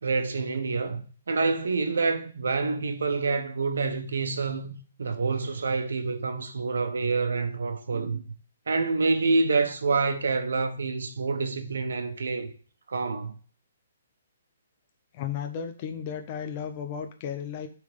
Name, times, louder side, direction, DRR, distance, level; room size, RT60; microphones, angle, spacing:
voice 1, 0.0-8.2 8.7-12.5 12.9-13.4, right 4 dB, 85° right, 1.2 m, -27 dB
voice 2, 15.1-17.7, left 8 dB, 25° left, 0.6 m, -34 dB
6.9 x 3.8 x 5.1 m
hypercardioid pair, 175°, 0 cm